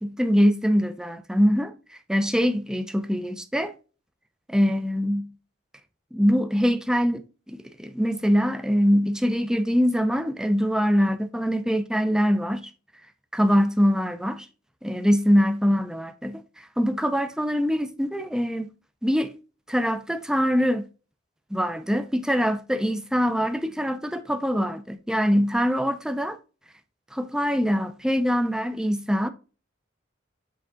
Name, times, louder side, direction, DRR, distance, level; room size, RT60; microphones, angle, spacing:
voice 1, 0.0-3.7 4.5-5.3 6.1-7.2 7.5-12.7 13.3-14.5 14.8-18.7 19.0-19.3 19.7-20.9 21.5-26.4 27.1-29.3, equal, 5° right, 0.5 m, -23 dB
8.1 x 3.7 x 3.6 m
head